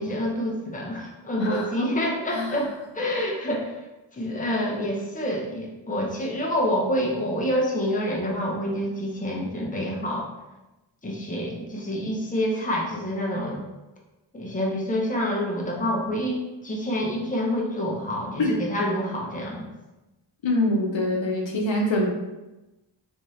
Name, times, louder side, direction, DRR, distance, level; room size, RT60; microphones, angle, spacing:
voice 1, 0.0-3.8 4.1-10.3 11.0-13.6 14.3-16.4 16.6-19.7, equal, 15° left, -3 dB, 0.8 m, -27 dB
voice 2, 1.4-1.7 2.3-2.6 18.4-18.5 20.4-22.1, left 1 dB, 70° left, 0 dB, 0.7 m, -24 dB
3.4 x 3.1 x 2.7 m, 1.0 s
wide cardioid pair, 55°, 47 cm